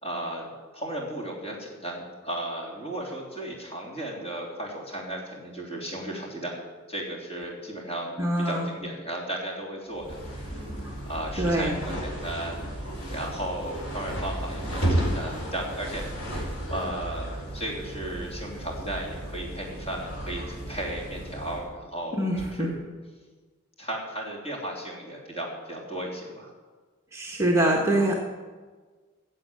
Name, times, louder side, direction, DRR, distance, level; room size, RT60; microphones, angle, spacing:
voice 1, 0.0-6.6 6.9-10.7 11.0-16.1 16.7-22.3 22.6-22.8 23.8-26.5, right 1 dB, 30° left, -2 dB, 3.3 m, -35 dB
voice 2, 8.2-8.7 11.4-11.7 22.2-22.7 27.1-28.2, right 1 dB, 15° right, -1 dB, 1.4 m, -24 dB
sound 1, 9.9-21.7, right 1 dB, 85° left, 4.5 m, -33 dB
15.0 x 7.7 x 8.7 m, 1.4 s
head